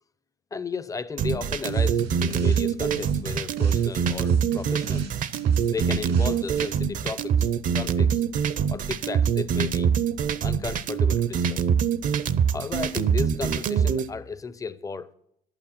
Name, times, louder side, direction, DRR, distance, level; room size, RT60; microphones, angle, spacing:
voice 1, 0.5-5.1 5.7-7.5 7.7-8.2 8.7-9.9 10.4-11.7 12.5-15.1, left 4 dB, 20° left, 0.6 m, -34 dB
sound 1, 1.2-14.1, right 7 dB, 50° right, 0.6 m, -24 dB
sound 2, 1.7-2.6 2.9-6.7, right 4 dB, 90° right, 2.1 m, -39 dB
11.0 x 8.8 x 6.0 m
cardioid pair, 110°, 17 cm